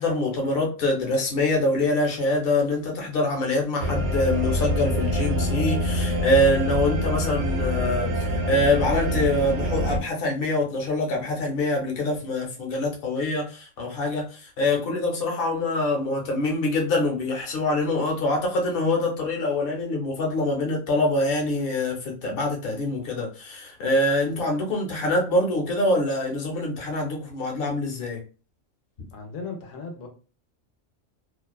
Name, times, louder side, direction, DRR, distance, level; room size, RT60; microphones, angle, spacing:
voice 1, 0.0-28.2, left 2 dB, 50° left, 0.9 m, -25 dB
sound 1, 3.8-10.0, equal, 75° right, 0.9 m, -25 dB
voice 2, 29.1-30.1, left 4 dB, 85° left, 1.0 m, -36 dB
2.5 x 2.2 x 2.2 m
omnidirectional pair, 1.3 m